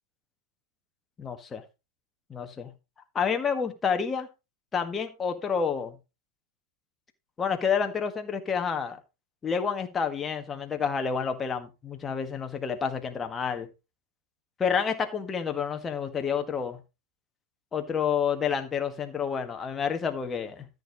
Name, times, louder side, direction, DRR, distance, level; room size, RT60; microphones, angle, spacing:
voice 1, 1.2-1.6 2.3-2.7 3.1-4.3 4.7-6.0 7.4-9.0 9.4-13.7 14.6-16.8 17.7-20.7, left 6 dB, 20° left, 1.7 m, -29 dB
13.5 x 6.7 x 3.9 m
figure-of-eight pair, 90°, 0 cm